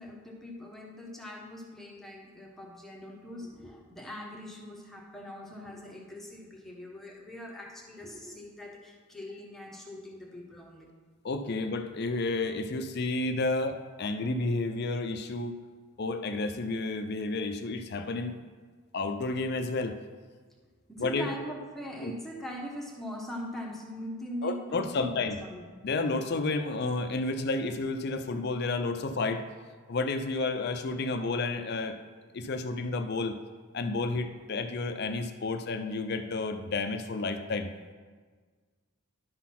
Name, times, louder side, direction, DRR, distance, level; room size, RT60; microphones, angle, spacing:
voice 1, 0.0-10.9 20.9-25.7, equal, ahead, -1 dB, 1.0 m, -42 dB
voice 2, 11.2-15.5 16.0-18.3 18.9-20.0 21.0-21.3 22.0-22.1 24.4-25.4 25.8-29.5 29.9-32.0 32.3-33.4 33.7-37.7, left 3 dB, 50° left, 8 dB, 0.5 m, -31 dB
11.0 x 4.0 x 5.8 m, 1.5 s
head